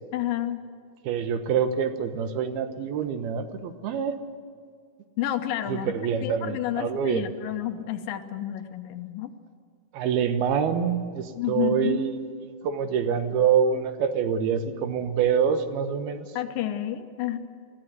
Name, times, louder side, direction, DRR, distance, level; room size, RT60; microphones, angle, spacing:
voice 1, 0.1-0.6 5.2-5.9 6.2-9.3 11.4-12.0 16.4-17.4, left 11 dB, 75° left, 8 dB, 2.5 m, -30 dB
voice 2, 1.0-4.2 5.7-7.3 9.9-16.3, right 7 dB, 85° right, 8 dB, 3.2 m, -26 dB
23.0 x 15.0 x 9.6 m, 2.1 s
omnidirectional pair, 4.3 m